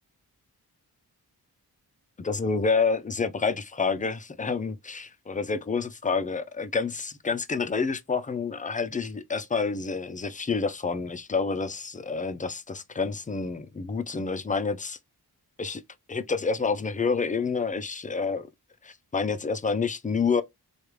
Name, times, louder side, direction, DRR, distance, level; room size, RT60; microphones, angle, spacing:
voice 1, 2.2-15.0 15.6-15.8 16.1-18.5 18.8-20.4, left 4 dB, 20° left, 0.4 m, -28 dB
3.3 x 2.4 x 3.1 m
wide cardioid pair, 80°, 38 cm